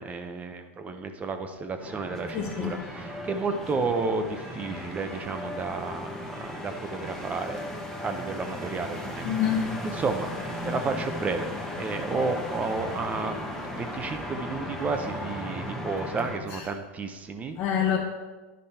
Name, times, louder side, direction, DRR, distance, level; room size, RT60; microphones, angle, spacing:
voice 1, 0.0-7.6 8.0-9.3 9.9-10.3 10.6-13.5 13.7-17.6, right 4 dB, 20° right, 7 dB, 0.7 m, -32 dB
sound 1, 1.8-16.4, left 1 dB, 5° left, 1.0 m, -36 dB
voice 2, 2.3-2.7 9.2-9.8 17.6-18.0, left 8 dB, 35° left, 0 dB, 0.9 m, -26 dB
10.5 x 5.2 x 4.3 m, 1.2 s
supercardioid pair, 135°, 7 cm